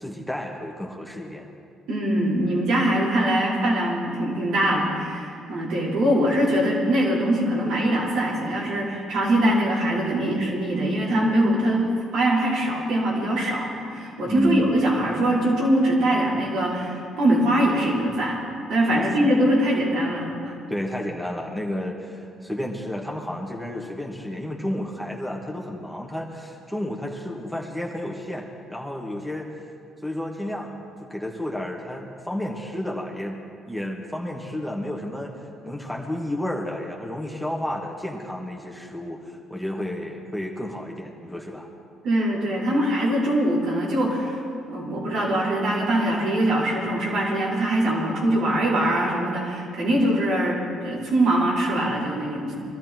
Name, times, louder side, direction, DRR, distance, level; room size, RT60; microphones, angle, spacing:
voice 1, 0.0-1.5 14.3-14.8 18.9-19.0 20.7-29.5 30.0-33.4 33.7-41.7 49.9-50.1, left 1 dB, ahead, -1 dB, 2.3 m, -31 dB
voice 2, 1.9-18.4 18.7-20.6 42.0-44.4 44.7-52.5, right 1 dB, 70° right, -6 dB, 4.9 m, -22 dB
22.5 x 13.5 x 4.7 m, 2.4 s
hypercardioid pair, 55°, 0 cm